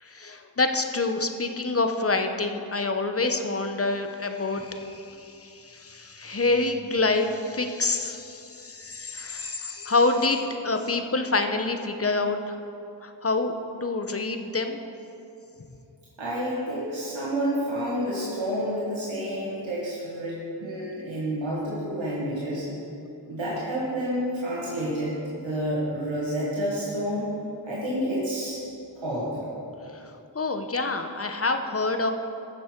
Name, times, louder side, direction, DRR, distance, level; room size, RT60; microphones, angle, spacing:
voice 1, 0.0-12.6 13.0-13.5 13.8-14.8 29.9-30.0 30.3-32.1, left 3 dB, 30° left, 6 dB, 0.8 m, -27 dB
voice 2, 16.2-22.6 23.3-27.3 27.6-28.6 29.0-29.4, equal, 90° right, -7 dB, 1.9 m, -29 dB
15.0 x 6.2 x 4.5 m, 2.7 s
cardioid pair, 55°, 45 cm